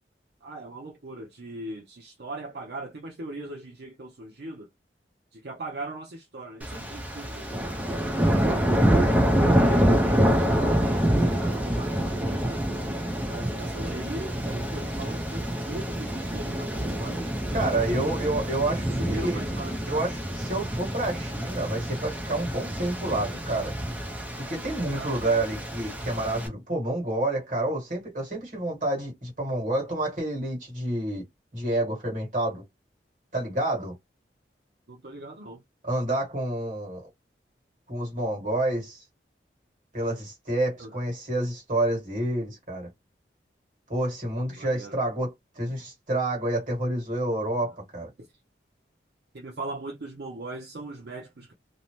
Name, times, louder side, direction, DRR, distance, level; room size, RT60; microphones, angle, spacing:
voice 1, 0.4-4.7 5.3-7.5 7.7-8.8 9.3-12.5 13.3-17.6 18.6-20.0 24.9-25.1 34.9-35.6 40.8-40.9 44.6-45.0 48.2-48.3 49.3-51.5, right 2 dB, 65° right, 0.6 m, -40 dB
sound 1, 6.6-26.5, equal, 10° right, 0.5 m, -26 dB
voice 2, 17.5-19.4 19.8-23.7 24.4-31.2 31.5-32.6 33.3-33.9 35.8-37.1 37.9-39.0 39.9-42.9 43.9-48.1, right 1 dB, 45° right, 1.5 m, -29 dB
2.7 x 2.0 x 3.0 m
head